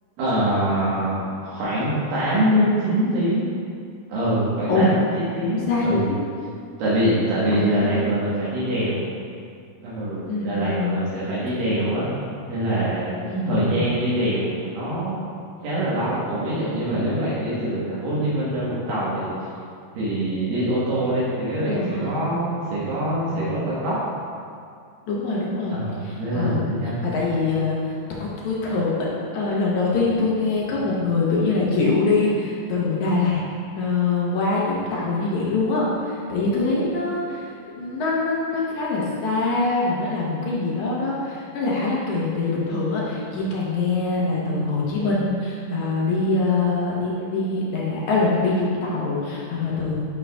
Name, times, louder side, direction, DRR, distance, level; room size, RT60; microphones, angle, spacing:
voice 1, 0.2-3.5 4.1-6.0 6.8-9.0 9.8-12.1 12.5-13.2 13.4-15.2 15.6-19.3 19.9-24.0 25.7-27.0, right 1 dB, 75° right, -9 dB, 3.0 m, -24 dB
voice 2, 5.6-6.2 7.5-8.3 10.3-11.0 13.2-13.9 21.6-22.3 25.1-26.6 26.9-27.9 28.2-28.9 29.3-33.4 33.8-37.5 37.8-50.1, left 3 dB, 65° left, -6 dB, 2.0 m, -24 dB
10.5 x 4.8 x 2.3 m, 2.3 s
omnidirectional pair, 4.1 m